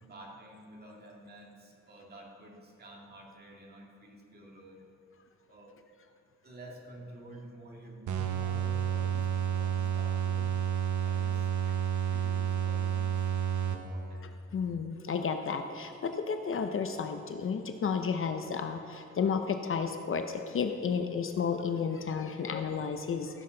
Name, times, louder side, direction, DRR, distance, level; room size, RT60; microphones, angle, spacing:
voice 1, 0.0-4.8 5.5-5.8 6.4-10.5 11.0-11.5 12.1-13.3 13.6-14.2, right 1 dB, 30° right, -1 dB, 1.9 m, -50 dB
sound 1, 8.1-14.2, right 9 dB, 75° right, 1.0 m, -30 dB
voice 2, 14.5-23.4, left 6 dB, 45° left, 6 dB, 0.6 m, -32 dB
15.0 x 7.6 x 3.9 m, 2.8 s
cardioid pair, 125°, 30 cm